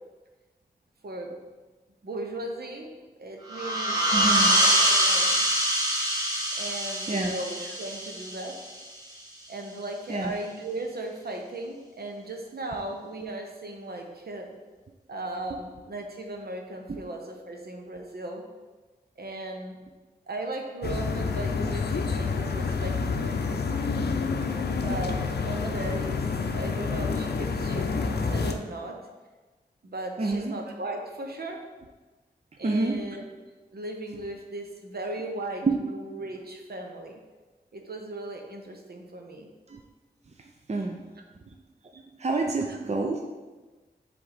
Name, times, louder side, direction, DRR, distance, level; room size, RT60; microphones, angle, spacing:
voice 1, 1.0-1.4 2.0-2.9 3.2-4.0 4.3-5.4 6.6-8.6 9.5-14.5 15.1-18.4 19.2-19.8 20.3-23.6 24.8-29.0 29.8-31.6 32.6-33.4 33.7-37.2 37.7-39.5 42.7-42.8, right 2 dB, 65° right, 2 dB, 1.0 m, -37 dB
sound 1, 3.5-8.8, right 1 dB, 20° right, 1.4 m, -24 dB
voice 2, 4.1-4.5 7.1-7.3 10.1-10.3 30.2-30.5 32.6-33.0 35.6-35.7 39.7-39.8 40.7-41.0 42.2-43.2, right 3 dB, 40° right, 2 dB, 0.6 m, -27 dB
sound 2, 20.8-28.5, left 4 dB, 70° left, 0.6 m, -28 dB
7.5 x 3.5 x 4.1 m, 1.2 s
cardioid pair, 40°, 17 cm